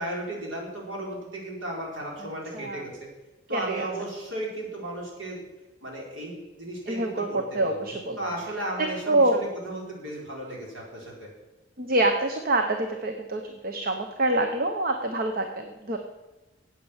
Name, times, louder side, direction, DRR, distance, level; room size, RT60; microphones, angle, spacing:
voice 1, 0.0-3.1 3.5-5.4 5.8-7.9 8.2-11.3, right 1 dB, 85° right, -2 dB, 4.5 m, -35 dB
voice 2, 2.5-2.9 3.5-3.9 6.9-8.2 8.8-9.4 11.8-16.0, right 2 dB, 50° right, 5 dB, 1.0 m, -26 dB
10.0 x 8.4 x 8.2 m, 1.1 s
head